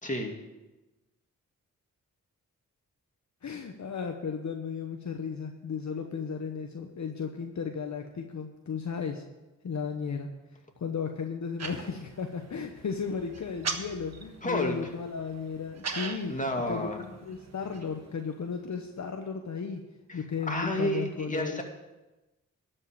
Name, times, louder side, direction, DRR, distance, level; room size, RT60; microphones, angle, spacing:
voice 1, 0.0-0.3 14.4-14.7 16.3-17.0 20.1-21.6, left 1 dB, 25° left, 1 dB, 2.4 m, -31 dB
voice 2, 3.4-9.2 9.6-10.3 10.8-16.3 16.7-19.8 20.1-21.6, left 6 dB, 60° left, 4 dB, 1.0 m, -35 dB
sound 1, 11.6-18.8, right 4 dB, 50° right, 1.3 m, -41 dB
12.5 x 5.5 x 8.2 m, 1.1 s
cardioid pair, 50°, 33 cm